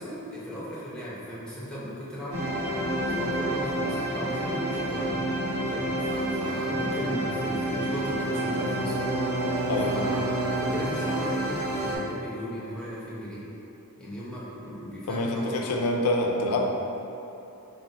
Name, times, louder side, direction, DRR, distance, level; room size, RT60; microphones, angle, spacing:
voice 1, 0.0-2.4 2.9-5.2 5.7-8.9 9.9-13.4 14.0-15.9, equal, 5° left, -8 dB, 0.7 m, -37 dB
sound 1, 2.3-12.0, right 1 dB, 70° right, 1.0 m, -29 dB
Bowed string instrument, 8.2-11.8, right 2 dB, 90° right, 0.8 m, -33 dB
voice 2, 15.1-16.7, left 2 dB, 80° left, 1 dB, 0.4 m, -26 dB
4.2 x 2.1 x 3.9 m, 2.9 s
head